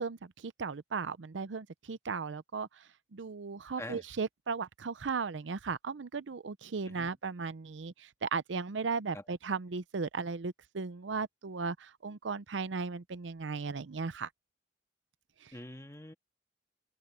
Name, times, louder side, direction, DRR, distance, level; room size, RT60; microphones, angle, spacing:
voice 1, 0.0-14.3 15.4-15.5, right 4 dB, 90° right, 0.6 m, -36 dB
voice 2, 15.5-16.1, left 1 dB, 15° left, 1.8 m, -45 dB
head